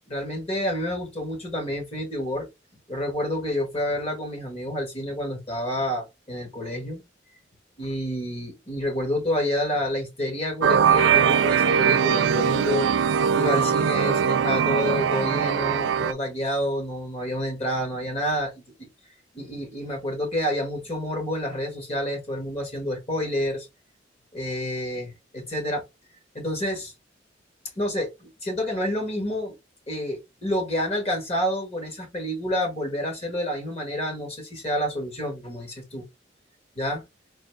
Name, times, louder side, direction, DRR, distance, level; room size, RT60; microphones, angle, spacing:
voice 1, 0.1-2.5 2.9-7.0 7.8-12.9 13.3-18.5 18.8-18.9 19.3-23.7 24.3-25.8 26.3-26.9 27.7-29.5 29.9-36.0 36.8-37.0, left 1 dB, 35° left, 1.4 m, -29 dB
sound 1, 10.6-16.1, right 7 dB, 90° right, 0.4 m, -21 dB
4.1 x 2.6 x 3.2 m
head